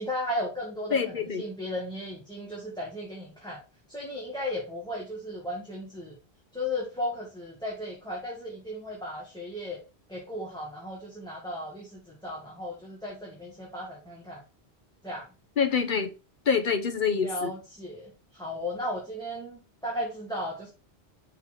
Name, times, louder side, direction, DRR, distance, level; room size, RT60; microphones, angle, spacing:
voice 1, 0.0-3.6 3.9-6.1 6.5-9.8 10.1-14.4 15.0-15.3 17.2-20.7, left 1 dB, 5° left, 1.7 m, -35 dB
voice 2, 0.9-1.4 15.6-16.1 16.5-17.5, left 6 dB, 50° left, 1.0 m, -26 dB
6.0 x 3.8 x 5.7 m
omnidirectional pair, 1.1 m